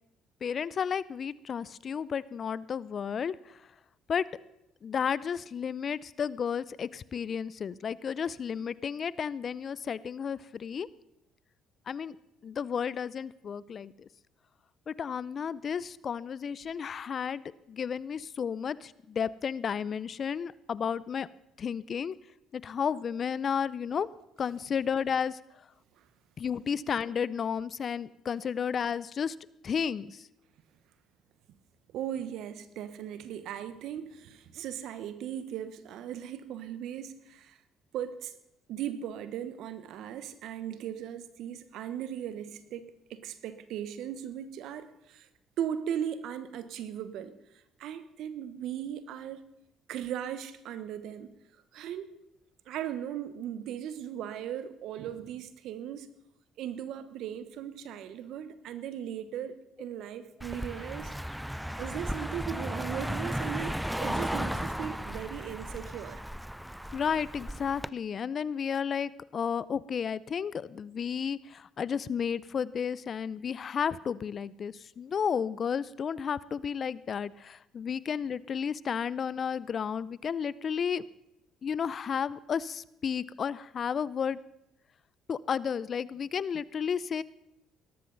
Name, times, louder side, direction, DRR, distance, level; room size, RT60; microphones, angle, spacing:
voice 1, 0.4-3.7 4.1-4.3 4.8-10.9 11.9-12.2 12.4-14.1 14.9-17.4 17.7-21.3 21.6-22.2 22.5-24.1 24.4-25.4 26.4-29.4 29.6-30.3 66.9-81.0 81.6-84.4 85.3-87.2, left 7 dB, 50° left, 0.5 m, -32 dB
voice 2, 31.9-37.6 37.9-38.3 38.7-45.3 45.6-47.3 47.8-49.4 49.9-51.3 51.7-52.1 52.7-56.1 56.6-61.2 61.8-66.2, right 10 dB, 70° right, 1.1 m, -38 dB
Car passing by, 60.4-67.9, equal, ahead, 0.4 m, -35 dB
18.0 x 13.0 x 4.0 m
supercardioid pair, 65°, 0 cm